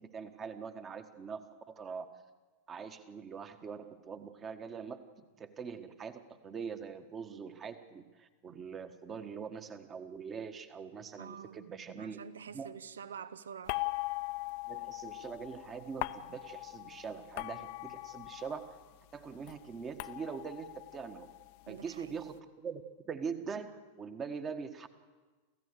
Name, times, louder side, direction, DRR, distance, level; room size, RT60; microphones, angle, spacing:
voice 1, 0.0-2.1 2.7-12.2 12.5-12.7 14.7-18.7 19.1-21.3 21.7-24.9, right 6 dB, 25° right, 1.5 m, -43 dB
voice 2, 11.2-11.7 12.0-13.8 21.7-22.2, right 7 dB, 65° right, 0.7 m, -47 dB
sound 1, 13.7-18.9 19.2-22.1, left 22 dB, 45° left, 0.7 m, -41 dB
28.0 x 15.5 x 6.8 m
figure-of-eight pair, 90°, 0 cm